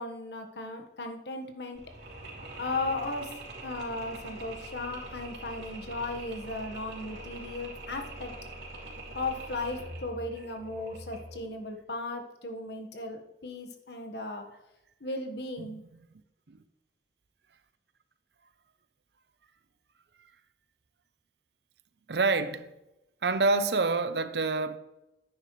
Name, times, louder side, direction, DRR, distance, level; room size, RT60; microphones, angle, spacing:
voice 1, 0.0-1.8 2.6-3.3 3.6-8.3 9.1-14.5 15.0-15.8, left 2 dB, 70° left, 1.4 m, -36 dB
Mechanisms, 1.7-11.5, right 2 dB, 85° right, 3.0 m, -44 dB
voice 2, 22.1-22.7 23.2-24.8, right 3 dB, 70° right, 0.7 m, -27 dB
10.5 x 9.6 x 3.2 m
head